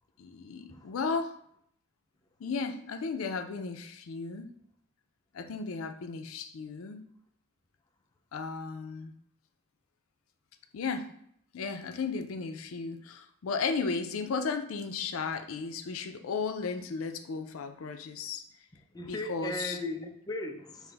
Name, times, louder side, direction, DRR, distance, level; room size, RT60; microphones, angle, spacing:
voice 1, 0.2-1.3 2.4-4.5 5.3-7.1 8.3-9.1 10.7-11.1 11.5-18.4 19.0-19.8, left 4 dB, 80° left, 7 dB, 0.4 m, -35 dB
voice 2, 18.9-20.9, left 2 dB, 20° left, 3 dB, 0.4 m, -37 dB
5.7 x 2.0 x 3.4 m, 0.69 s
head